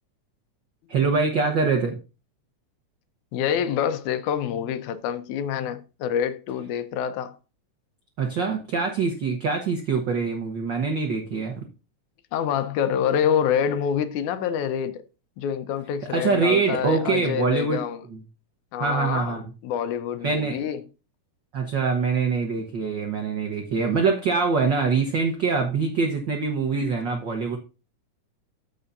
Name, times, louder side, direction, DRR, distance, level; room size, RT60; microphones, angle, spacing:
voice 1, 0.9-2.0 8.2-11.5 16.1-17.8 18.1-18.2 18.8-19.4 20.2-20.6 21.5-27.6, right 4 dB, 80° right, 1.0 m, -24 dB
voice 2, 3.3-7.3 12.3-15.0 15.4-18.0 18.7-20.8, left 8 dB, 80° left, 2.1 m, -26 dB
13.5 x 5.5 x 2.6 m
omnidirectional pair, 3.6 m